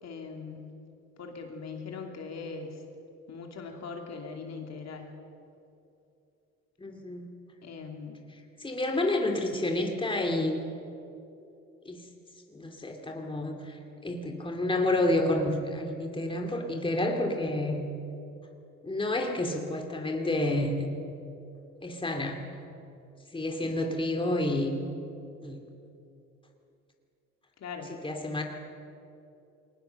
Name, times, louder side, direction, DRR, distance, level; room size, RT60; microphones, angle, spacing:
voice 1, 0.0-0.8 1.2-2.8 3.3-5.1 7.6-8.2 23.6-23.7 27.6-27.9, left 5 dB, 60° left, 2 dB, 2.9 m, -40 dB
voice 2, 6.8-7.3 8.6-10.6 11.9-12.0 12.5-17.8 18.8-20.9 21.8-22.4 23.3-24.8 25.4-25.6 27.9-28.4, left 1 dB, 15° left, 3 dB, 2.6 m, -29 dB
22.5 x 19.0 x 6.9 m, 2.7 s
cardioid pair, 90°, 30 cm